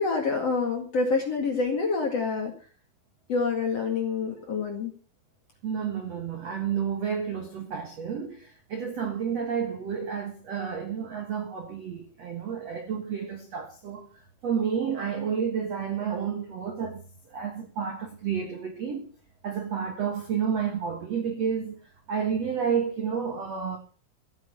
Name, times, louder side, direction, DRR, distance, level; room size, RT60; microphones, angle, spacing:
voice 1, 0.0-2.5 3.3-4.9, left 4 dB, 45° left, 2.2 m, -27 dB
voice 2, 5.6-14.1 14.4-19.1 19.4-21.8 22.1-23.8, right 7 dB, 65° right, 1.6 m, -30 dB
14.5 x 9.3 x 7.0 m
omnidirectional pair, 5.7 m